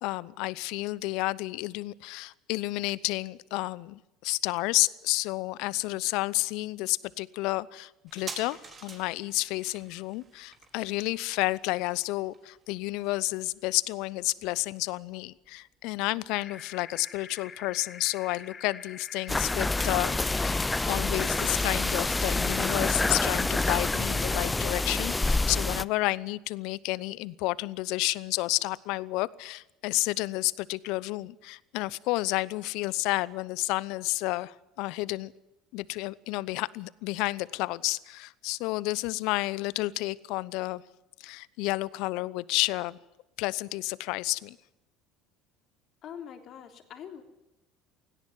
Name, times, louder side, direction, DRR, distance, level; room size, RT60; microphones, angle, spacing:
voice 1, 0.0-20.6 20.9-35.3 35.7-40.8 41.2-43.0 43.4-44.6, left 20 dB, 70° left, 21 dB, 0.8 m, -31 dB
sound 1, 8.1-15.2 15.4-15.5, right 5 dB, 35° right, 4.2 m, -48 dB
sound 2, 16.3-24.5, left 6 dB, 35° left, 1.9 m, -46 dB
sound 3, 19.3-25.8, left 2 dB, 15° left, 0.7 m, -27 dB
voice 2, 46.0-47.2, left 8 dB, 55° left, 6 dB, 3.5 m, -43 dB
18.0 x 17.0 x 9.4 m, 0.94 s
hypercardioid pair, 70°, 0 cm